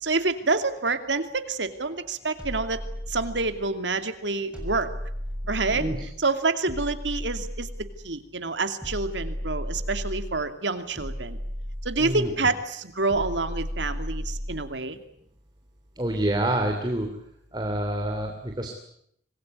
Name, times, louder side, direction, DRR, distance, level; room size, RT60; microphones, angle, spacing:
voice 1, 0.0-2.8 3.1-4.9 5.5-5.9 6.2-11.4 11.8-15.0, right 3 dB, 85° right, 9 dB, 2.6 m, -27 dB
sound 1, 2.4-3.7 4.5-6.2 6.7-8.1 8.8-10.4 11.0-12.4 13.1-14.7, equal, 5° right, 6.6 m, -34 dB
voice 2, 12.0-12.3 16.0-17.1 17.5-18.7, right 1 dB, 25° right, 3 dB, 3.1 m, -27 dB
25.5 x 20.5 x 9.6 m, 0.72 s
head